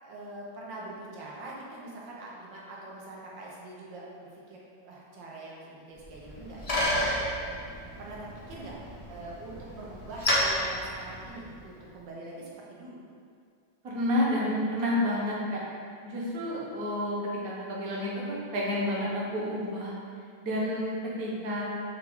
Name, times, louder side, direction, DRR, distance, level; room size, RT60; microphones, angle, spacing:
voice 1, 0.0-4.6 4.8-7.0 8.0-8.8 9.1-13.0, right 2 dB, 90° right, -4 dB, 1.5 m, -43 dB
Bicycle, 6.0-11.7, left 1 dB, 75° left, 0.3 m, -31 dB
voice 2, 13.8-15.6 16.0-17.2 17.4-19.9 20.4-21.6, left 1 dB, 60° right, -5 dB, 1.2 m, -30 dB
5.7 x 2.3 x 3.5 m, 2.2 s
omnidirectional pair, 1.9 m